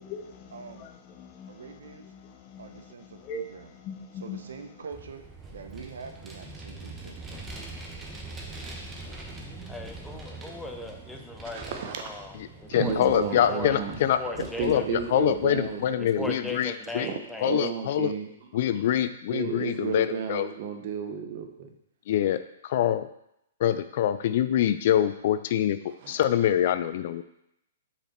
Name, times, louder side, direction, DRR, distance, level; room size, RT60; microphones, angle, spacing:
voice 1, 0.0-4.7, left 3 dB, 35° left, 0.9 m, -42 dB
voice 2, 0.5-0.9 1.5-2.0 2.6-3.7 4.2-7.2, right 5 dB, 80° right, 0.8 m, -44 dB
Vehicle, 4.9-15.8, right 2 dB, 15° right, 1.0 m, -43 dB
voice 3, 9.7-11.7 12.0-12.3 12.6-13.0 13.5-13.8 14.2-14.9 16.2-17.5, left 2 dB, 5° left, 0.7 m, -37 dB
voice 4, 11.5-12.0 12.8-14.0 14.3-16.4 17.0-18.3 18.7-18.8 19.3-21.7 26.0-26.1, right 7 dB, 50° right, 1.0 m, -33 dB
voice 5, 12.7-14.2 14.6-17.1 17.4-18.1 18.5-20.5 22.1-23.1 23.6-25.8 26.1-27.2, left 10 dB, 55° left, 0.4 m, -25 dB
5.2 x 4.8 x 4.4 m
hypercardioid pair, 140°, 0 cm